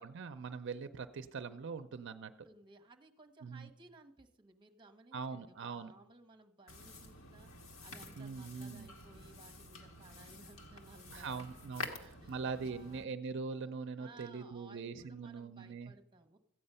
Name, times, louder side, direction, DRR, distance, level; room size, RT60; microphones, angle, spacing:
voice 1, 0.0-2.3 3.4-3.7 5.1-5.9 8.2-8.9 11.1-15.9, right 5 dB, 60° right, 10 dB, 0.5 m, -42 dB
voice 2, 2.1-11.5 11.8-13.1 14.0-16.4, right 3 dB, 20° right, 5 dB, 1.0 m, -59 dB
sound 1, 6.7-13.0, left 2 dB, 75° left, 1.5 m, -49 dB
14.0 x 8.6 x 5.5 m, 0.83 s
head